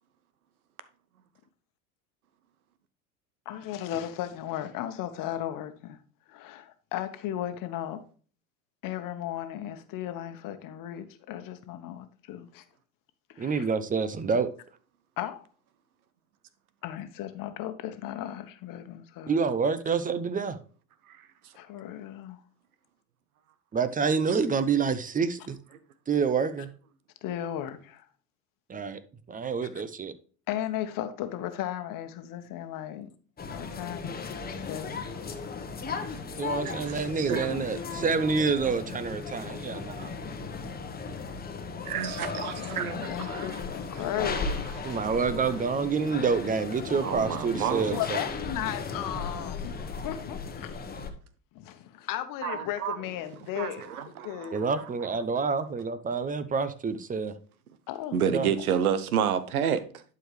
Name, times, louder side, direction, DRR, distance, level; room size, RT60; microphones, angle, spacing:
voice 1, 3.4-6.0 6.3-8.0 8.8-12.6 13.3-13.7 15.2-15.5 16.8-19.3 21.5-22.4 27.2-28.1 30.5-33.1 33.5-35.2 41.2-41.4 42.6-45.0 47.9-50.8 51.5-54.7 57.9-58.2 58.6-58.7, left 11 dB, 50° left, 1.2 m, -36 dB
voice 2, 13.4-14.5 19.3-20.6 23.7-25.6 26.1-26.7 28.7-29.0 29.3-30.2 36.4-40.1 44.8-48.2 54.5-57.3 58.2-58.5, right 5 dB, 20° right, 0.7 m, -28 dB
sound 1, 33.4-51.1, left 4 dB, 20° left, 1.1 m, -36 dB
voice 3, 36.6-37.5 38.0-38.1 41.8-43.6 44.2-44.5 44.9-45.0 47.0-48.0 52.4-53.0 53.6-54.8 58.1-60.0, right 8 dB, 90° right, 0.9 m, -30 dB
11.0 x 4.8 x 3.2 m
hypercardioid pair, 85°, 42 cm